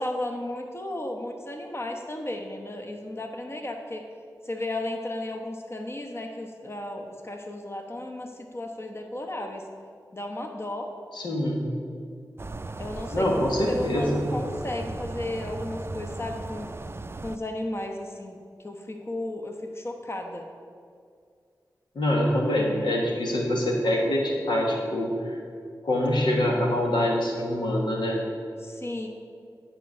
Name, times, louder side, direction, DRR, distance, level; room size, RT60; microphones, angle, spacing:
voice 1, 0.0-4.0 4.4-9.6 10.1-10.9 12.8-16.7 17.2-20.5 28.6-29.1, left 1 dB, 35° left, 3 dB, 1.0 m, -34 dB
voice 2, 11.1-11.6 13.1-14.2 21.9-25.4 25.8-28.2, left 1 dB, 90° left, -1 dB, 1.4 m, -25 dB
sound 1, 12.4-17.4, right 2 dB, 35° right, 0.4 m, -37 dB
10.5 x 4.5 x 6.5 m, 2.2 s
cardioid pair, 40°, 7 cm